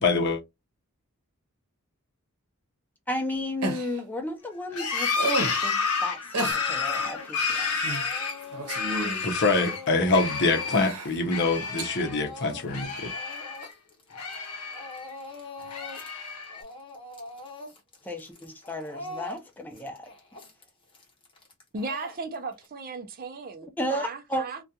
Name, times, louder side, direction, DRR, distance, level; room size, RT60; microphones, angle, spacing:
voice 1, 0.0-0.4 9.2-13.1, left 3 dB, 55° left, 0.7 m, -25 dB
voice 2, 3.1-5.1 5.4-7.8 18.0-20.1 23.8-24.5, left 1 dB, 10° left, 0.5 m, -33 dB
sound 1, 3.6-4.0 5.1-5.7 6.3-6.6 7.8-8.1 8.4-9.2 10.0-10.1 10.7-11.2 11.8-11.9 13.6-13.7, right 2 dB, 90° right, 0.8 m, -31 dB
sound 2, 4.7-9.8 10.1-10.9 11.3-12.3 12.5-13.7 14.1-15.1 15.6-16.6, left 5 dB, 85° left, 0.7 m, -30 dB
Speech / Crying sobbing, 6.5-7.5 7.8-14.5 14.7-16.2 16.4-22.7, left 3 dB, 25° left, 0.9 m, -43 dB
voice 3, 21.7-24.6, right 3 dB, 40° right, 0.5 m, -36 dB
2.4 x 2.3 x 2.7 m
head